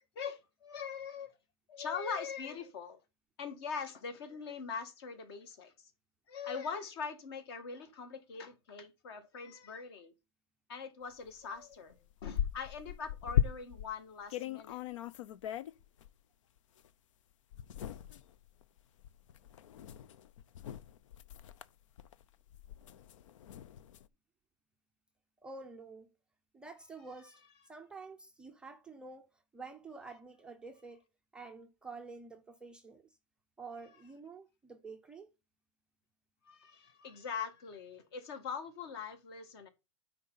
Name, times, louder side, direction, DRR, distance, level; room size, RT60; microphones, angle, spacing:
voice 1, 0.2-1.3 1.7-3.0 3.4-5.7 6.3-10.1 10.7-14.8 36.5-39.7, left 6 dB, 55° left, 2.0 m, -42 dB
sound 1, 11.3-11.4 11.7-13.9 14.3-16.1 16.8-16.9 17.5-24.1, left 9 dB, 85° left, 0.7 m, -38 dB
voice 2, 25.4-26.1 26.5-31.0 31.3-33.2 33.6-35.3, right 4 dB, 5° right, 0.4 m, -49 dB
9.6 x 4.0 x 5.6 m
supercardioid pair, 170°, 16 cm